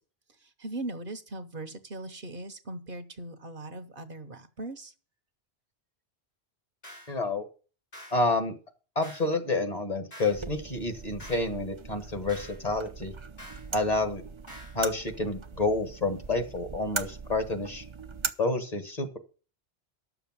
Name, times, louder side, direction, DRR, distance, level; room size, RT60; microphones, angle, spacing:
voice 1, 0.4-4.9, right 2 dB, 55° right, 9 dB, 1.2 m, -39 dB
sound 1, 6.8-7.2 7.9-8.2 9.0-9.3 10.1-10.4 11.2-11.5 12.3-12.6 13.4-13.7 14.5-14.8, equal, 80° left, 4.9 m, -47 dB
voice 2, 7.1-7.4 8.1-8.5 8.9-13.1 13.7-14.2 14.7-17.8 18.4-19.2, left 2 dB, 40° left, 7 dB, 1.7 m, -29 dB
sound 2, 10.3-18.3, right 4 dB, 30° right, 0.7 m, -40 dB
10.5 x 7.1 x 7.4 m, 0.37 s
omnidirectional pair, 1.1 m